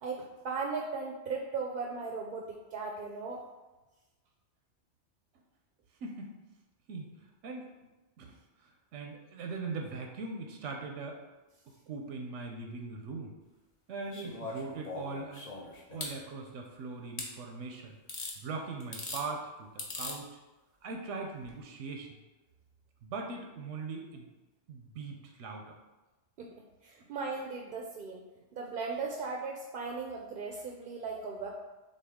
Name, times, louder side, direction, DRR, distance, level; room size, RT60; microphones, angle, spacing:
voice 1, 0.0-3.4 26.4-26.5 26.8-28.2 28.5-31.5, right 4 dB, 60° right, 0 dB, 0.6 m, -37 dB
voice 2, 6.0-6.3 6.9-7.1 7.4-7.7 8.2-11.2 11.9-13.4 13.9-15.4 15.9-18.0 18.4-20.4 20.8-22.1 23.0-24.3 24.7-25.7, right 4 dB, 90° right, 2 dB, 1.0 m, -40 dB
sound 1, 14.1-16.2 17.2-17.3 18.1-18.4 18.8-19.2 19.8-20.2 21.4-21.5, left 2 dB, 40° left, 0.7 m, -40 dB
6.4 x 2.3 x 3.5 m, 1.1 s
omnidirectional pair, 1.2 m